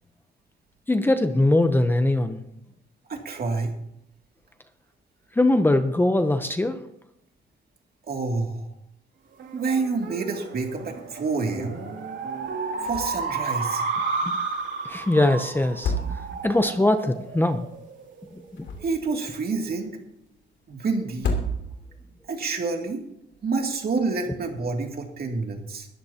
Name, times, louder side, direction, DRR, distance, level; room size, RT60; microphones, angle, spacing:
voice 1, 0.9-2.4 5.3-6.8 14.2-14.3 14.8-17.7 18.3-18.7, left 1 dB, 10° left, 8 dB, 0.8 m, -22 dB
voice 2, 3.1-3.7 8.1-8.7 9.5-11.8 12.8-13.8 18.8-20.0 20.7-21.3 22.3-23.0 23.4-25.9, right 4 dB, 55° right, 2 dB, 2.6 m, -28 dB
sound 1, 9.4-18.2, right 4 dB, 80° right, 2.8 m, -32 dB
sound 2, 12.8-13.4 13.6-13.7 15.6-16.6 18.3-19.2 21.1-22.0, left 1 dB, 75° left, 2.9 m, -30 dB
21.0 x 13.5 x 2.9 m, 0.78 s
cardioid pair, 120°, 19 cm